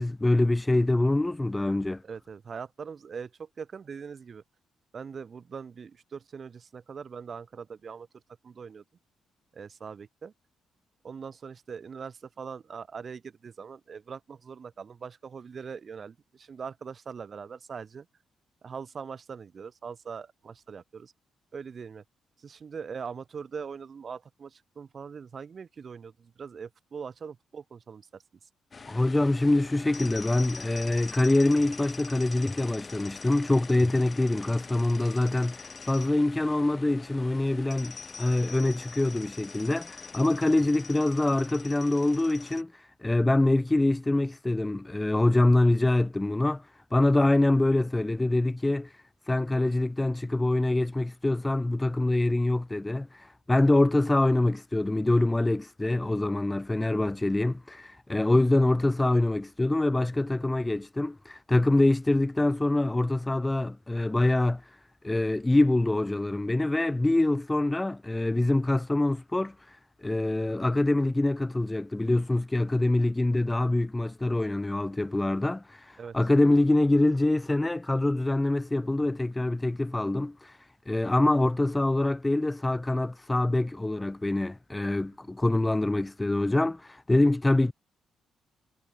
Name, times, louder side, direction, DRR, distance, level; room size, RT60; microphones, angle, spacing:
voice 1, 0.0-2.0 28.9-46.7 46.9-48.9 49.3-64.6 65.0-69.8 70.0-80.6 80.9-87.7, left 2 dB, 15° left, 0.3 m, -25 dB
voice 2, 2.0-4.4 4.9-8.1 8.4-8.8 9.5-10.3 11.0-18.1 18.6-21.1 21.5-22.0 22.4-28.2 56.9-57.0 58.3-58.4 76.0-76.2, right 6 dB, 45° right, 1.1 m, -41 dB
sound 1, 28.7-42.6, left 4 dB, 35° left, 1.4 m, -44 dB
cardioid pair, 95°, 0 cm